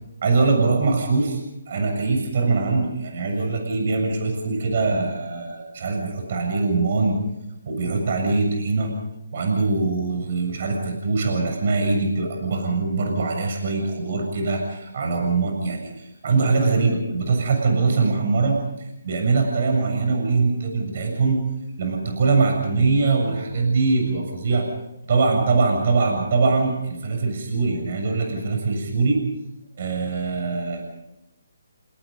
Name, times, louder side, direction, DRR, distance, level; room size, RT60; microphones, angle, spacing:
voice 1, 0.2-1.4 1.7-7.2 7.6-8.9 9.3-18.6 19.0-21.4 21.8-24.7 25.1-29.2 29.8-30.8, right 4 dB, 50° right, 3 dB, 7.3 m, -22 dB
30.0 x 19.5 x 5.3 m, 0.90 s
hypercardioid pair, 160°, 0 cm